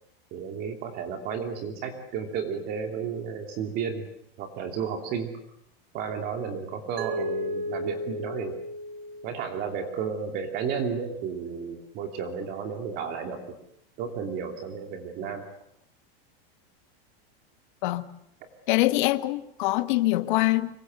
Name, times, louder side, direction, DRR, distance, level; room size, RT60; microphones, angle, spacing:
voice 1, 0.3-4.1 4.4-5.3 5.9-8.6 9.2-13.6 14.0-15.5, right 6 dB, 30° right, 2.9 m, -32 dB
Mallet percussion, 7.0-9.9, equal, 75° right, 3.5 m, -34 dB
voice 2, 18.7-20.7, left 18 dB, 55° left, 1.5 m, -24 dB
25.5 x 24.0 x 7.9 m
supercardioid pair, 175°, 30 cm